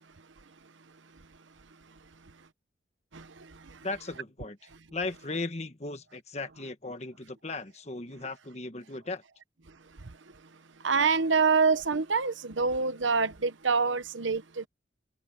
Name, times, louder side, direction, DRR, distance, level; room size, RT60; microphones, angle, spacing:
voice 1, 3.8-4.6 4.9-9.2, left 3 dB, 35° left, 1.4 m, -37 dB
voice 2, 10.8-14.7, right 4 dB, 90° right, 1.1 m, -26 dB
head